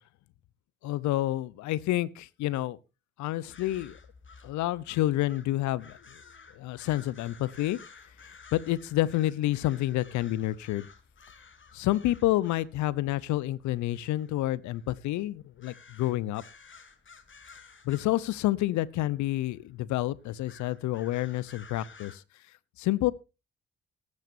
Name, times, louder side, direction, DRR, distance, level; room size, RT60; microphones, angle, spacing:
voice 1, 0.8-2.8 3.2-4.0 4.4-6.2 6.5-7.8 8.5-10.9 11.7-16.4 17.8-22.2 22.8-23.1, left 15 dB, 70° left, 21 dB, 0.8 m, -29 dB
sound 1, 3.5-22.2, left 5 dB, 40° left, 2.3 m, -54 dB
18.5 x 9.7 x 2.6 m, 0.27 s
hypercardioid pair, 40°, 30 cm